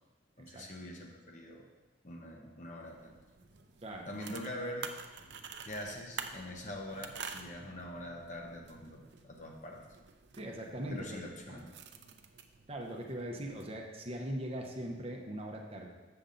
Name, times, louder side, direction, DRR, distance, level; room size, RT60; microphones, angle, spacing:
voice 1, 0.4-1.6 2.0-3.2 4.0-4.9 5.6-9.9 10.9-11.6, left 1 dB, 40° left, 1 dB, 1.0 m, -44 dB
sound 1, 2.8-13.6, right 6 dB, 70° right, 0.5 m, -49 dB
sound 2, 3.4-4.0 5.0-5.8 6.2-6.3 7.3-8.1 8.4-8.5 9.4-9.5 9.7-10.1 11.4-11.5 11.7-12.3, equal, 25° left, 1.6 m, -67 dB
voice 2, 10.4-11.7 12.7-15.9, right 1 dB, 35° right, 1 dB, 0.8 m, -40 dB
7.0 x 6.8 x 3.9 m, 1.2 s
head